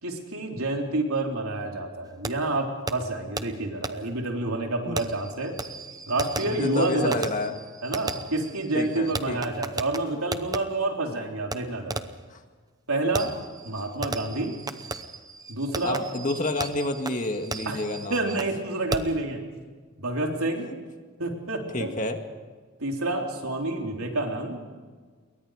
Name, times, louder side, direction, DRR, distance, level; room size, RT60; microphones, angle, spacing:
voice 1, 0.0-5.6 6.1-7.2 7.8-12.0 12.9-13.3 13.6-14.5 15.5-16.0 17.7-17.8 18.1-19.4 20.0-20.7 21.2-21.9 22.8-24.6, right 2 dB, 90° right, 1 dB, 3.8 m, -28 dB
Fireworks, 2.2-2.3 2.9-3.0 3.4-3.5 3.8-3.9 5.0-10.6 11.5-11.6 11.9-12.2 13.2-18.6 18.9-19.2, right 3 dB, 15° right, 0.8 m, -35 dB
voice 2, 6.4-7.5 8.7-9.4 12.3-12.4 15.8-18.4 21.7-22.2, left 2 dB, 35° left, 5 dB, 1.9 m, -29 dB
28.5 x 22.5 x 5.1 m, 1.5 s
head